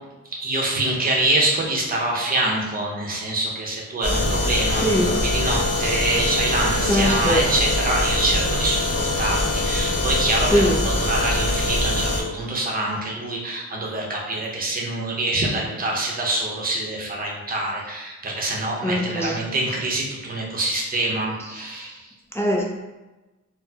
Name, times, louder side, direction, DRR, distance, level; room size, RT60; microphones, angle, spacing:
voice 1, 0.4-22.1, right 2 dB, 30° right, -2 dB, 0.7 m, -25 dB
sound 1, 4.0-12.2, left 2 dB, 50° left, 0.9 m, -23 dB
voice 2, 6.9-7.5 10.5-10.8 18.8-19.4 22.3-22.6, equal, 10° left, -3 dB, 0.3 m, -21 dB
4.1 x 2.0 x 2.7 m, 1.1 s
wide cardioid pair, 155°, 29 cm